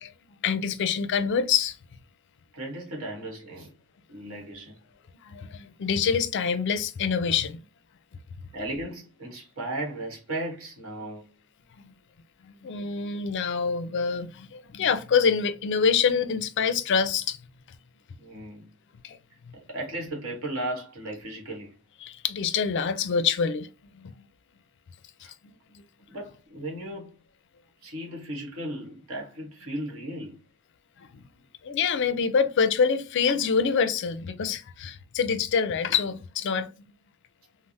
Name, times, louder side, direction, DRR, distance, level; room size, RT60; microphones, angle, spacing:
voice 1, 0.4-1.8 4.2-4.4 5.2-7.6 11.8-11.9 12.4-17.4 19.0-19.2 22.0-23.7 23.9-24.2 31.0-31.2 31.6-36.7, left 6 dB, 55° left, 0.4 m, -26 dB
voice 2, 2.5-3.7 4.1-4.8 8.5-11.2 18.2-18.7 19.7-21.7 25.2-25.3 26.1-27.2 27.8-30.4, right 1 dB, 65° right, 1.1 m, -35 dB
3.2 x 2.0 x 2.6 m
head